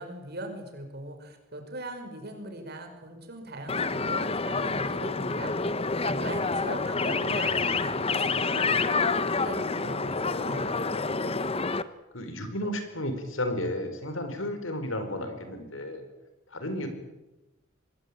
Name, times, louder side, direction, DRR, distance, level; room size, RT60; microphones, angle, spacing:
voice 1, 0.0-5.7 6.0-10.8, right 2 dB, 55° right, 5 dB, 5.7 m, -40 dB
sound 1, 3.7-11.8, left 4 dB, 30° left, 1.0 m, -28 dB
voice 2, 12.1-16.1 16.5-16.9, left 1 dB, 85° left, 8 dB, 5.0 m, -33 dB
25.5 x 20.0 x 8.8 m, 1.0 s
head